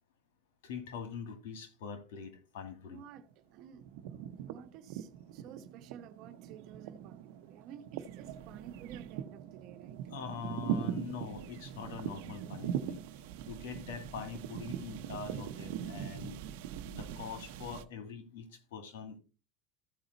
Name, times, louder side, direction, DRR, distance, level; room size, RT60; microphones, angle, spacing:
voice 1, 0.6-3.0 10.1-13.0 13.5-16.4 16.9-19.2, left 6 dB, 90° left, 2.0 m, -43 dB
sound 1, 2.7-3.3 3.6-17.8, right 10 dB, 75° right, 0.8 m, -41 dB
voice 2, 2.9-3.3 3.5-3.9 4.1-10.1, right 9 dB, 55° right, 1.1 m, -52 dB
14.5 x 4.9 x 4.0 m
supercardioid pair, 130°, 0 cm